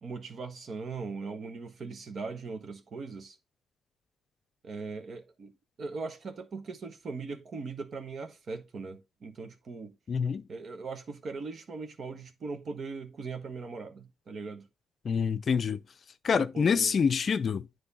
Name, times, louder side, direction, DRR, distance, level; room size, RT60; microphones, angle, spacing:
voice 1, 0.0-3.4 4.6-5.5 5.8-9.9 10.5-14.7 16.3-17.0, right 4 dB, 50° right, 1.3 m, -39 dB
voice 2, 10.1-10.4 15.0-15.8 16.2-17.7, left 6 dB, 50° left, 0.5 m, -26 dB
9.8 x 3.3 x 4.1 m
cardioid pair, 90°, 0 cm